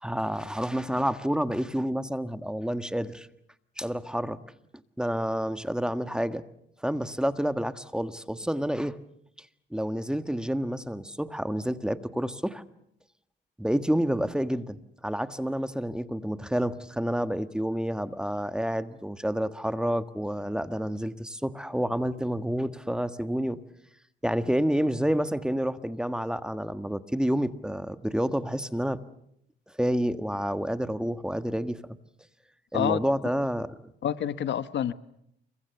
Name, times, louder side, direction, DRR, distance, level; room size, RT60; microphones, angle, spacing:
voice 1, 0.0-3.3 3.8-4.4 5.0-6.4 6.8-9.0 9.7-12.6 13.6-14.8 15.0-23.6 24.2-29.0 29.8-31.8 32.7-33.9, equal, 5° right, 10 dB, 1.6 m, -29 dB
voice 2, 34.0-34.9, left 10 dB, 65° left, 13 dB, 1.2 m, -27 dB
29.0 x 23.5 x 7.1 m, 0.75 s
cardioid pair, 90°, 20 cm